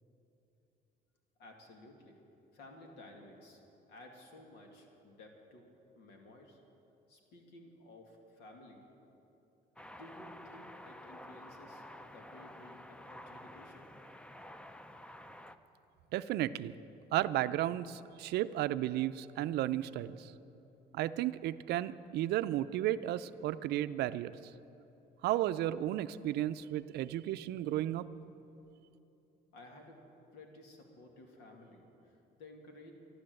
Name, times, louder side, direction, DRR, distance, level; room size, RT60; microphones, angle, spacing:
voice 1, 1.4-2.2 2.5-3.6 3.9-5.7 5.9-6.6 7.1-8.9 9.8-14.0 29.5-30.0 30.3-32.9, left 2 dB, 85° left, 2 dB, 2.2 m, -55 dB
sound 1, 9.8-15.6, left 1 dB, 5° left, 0.5 m, -51 dB
voice 2, 16.1-16.7 17.1-20.3 20.9-24.3 25.2-28.1, right 13 dB, 75° right, 14 dB, 0.5 m, -33 dB
13.0 x 11.5 x 7.7 m, 3.0 s
cardioid pair, 110°, 17 cm